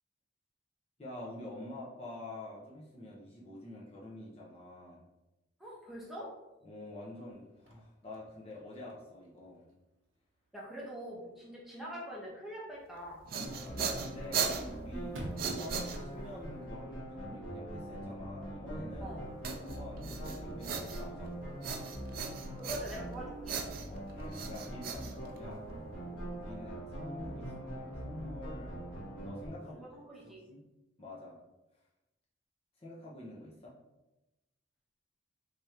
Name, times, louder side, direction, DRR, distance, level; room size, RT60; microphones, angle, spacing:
voice 1, 1.0-5.0 6.6-9.7 13.4-19.2 19.6-21.5 23.9-25.7 26.3-28.9 29.2-29.8 30.2-30.6 31.0-31.4 32.8-33.7, left 1 dB, 30° left, -5 dB, 0.6 m, -47 dB
voice 2, 5.6-6.3 10.5-13.2 19.0-19.2 22.5-23.6 29.8-30.4, right 1 dB, ahead, -6 dB, 0.8 m, -44 dB
Chirp tweet / Car / Slam, 7.3-17.3, right 1 dB, 80° right, 0.7 m, -54 dB
sound 1, 13.0-16.4 19.4-21.3 21.6-23.1 23.5-25.7, right 6 dB, 45° right, 0.4 m, -38 dB
sound 2, 13.4-29.5, right 1 dB, 70° left, 1.3 m, -43 dB
3.2 x 2.5 x 4.3 m, 1.0 s
head